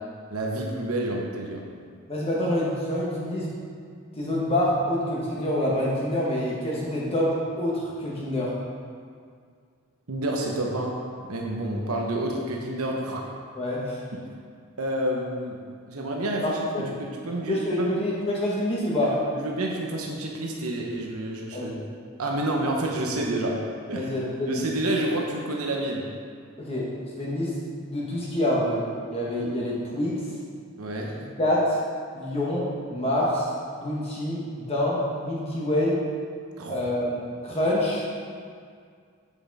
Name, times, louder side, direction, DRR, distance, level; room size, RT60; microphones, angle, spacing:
voice 1, 0.3-1.6 10.1-11.0 11.3-13.2 14.8-15.6 15.9-16.7 17.0-18.0 19.3-21.8 22.2-24.1 24.5-26.1 30.8-31.2 36.6-36.9, right 1 dB, 85° right, -1 dB, 1.0 m, -29 dB
voice 2, 2.1-3.5 4.2-8.5 13.5-14.0 16.4-17.0 17.5-19.1 21.5-21.8 23.9-24.7 26.6-28.8 29.1-30.2 31.4-31.8 32.1-33.5 33.8-36.0 36.7-38.0, left 1 dB, 25° left, -5 dB, 1.3 m, -26 dB
8.5 x 7.1 x 4.1 m, 2.1 s
head